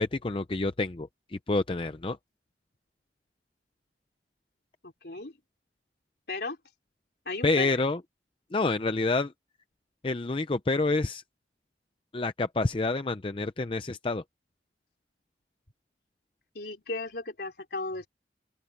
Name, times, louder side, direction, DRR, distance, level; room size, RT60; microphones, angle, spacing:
voice 1, 0.0-2.2 7.4-8.0 8.5-9.3 10.0-11.2 12.1-14.2, left 3 dB, 30° left, 0.6 m, -28 dB
voice 2, 4.8-5.3 6.3-6.6 7.3-7.8 16.5-18.1, left 3 dB, 60° left, 3.9 m, -35 dB
open air
head